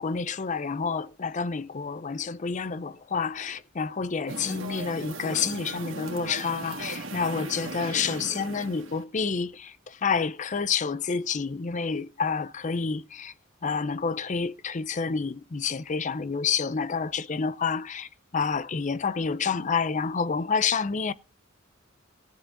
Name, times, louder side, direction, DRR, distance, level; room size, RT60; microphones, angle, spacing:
voice 1, 0.0-13.3 13.6-21.1, left 5 dB, 40° left, 0.5 m, -29 dB
sound 1, 4.3-9.0, right 2 dB, 75° right, 2.0 m, -37 dB
17.5 x 7.2 x 3.7 m
head